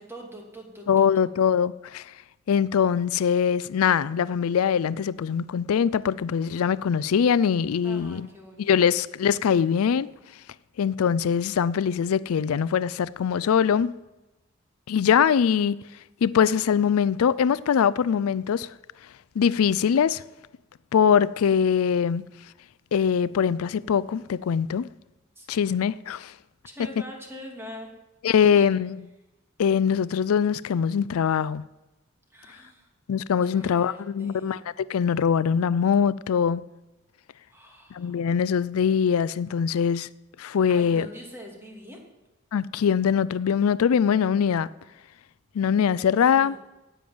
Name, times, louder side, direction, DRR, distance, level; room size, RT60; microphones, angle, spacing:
voice 1, 0.0-1.2 7.8-9.0 25.4-25.9 26.6-27.9 28.6-28.7 32.3-32.9 33.5-34.6 37.5-38.2 40.7-42.0 46.3-46.6, equal, 10° right, 2.6 m, -43 dB
voice 2, 0.9-2.0 2.5-8.3 8.6-10.1 10.8-13.9 14.9-15.8 16.2-18.7 19.4-20.2 20.9-22.3 22.9-24.9 25.5-26.3 28.2-29.0 29.6-31.6 33.1-36.6 37.9-40.1 40.4-41.1 42.5-44.7 45.5-46.5, left 7 dB, 85° left, 0.4 m, -22 dB
10.5 x 8.7 x 9.4 m
head